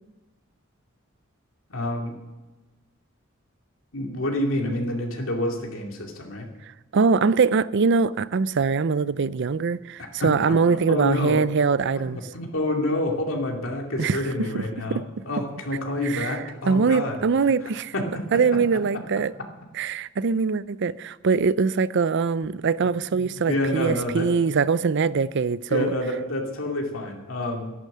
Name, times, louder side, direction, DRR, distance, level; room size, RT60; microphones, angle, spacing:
voice 1, 1.7-2.1 3.9-6.5 10.0-11.4 12.0-17.2 17.9-18.0 18.3-18.4 23.1-24.3 25.7-27.7, left 1 dB, 75° left, 2.5 m, -28 dB
voice 2, 6.9-12.2 14.0-14.2 14.5-14.6 14.9-15.0 16.0-16.3 16.7-17.9 18.3-19.3 19.7-25.9, right 5 dB, 60° right, 0.5 m, -22 dB
12.5 x 11.0 x 7.4 m
head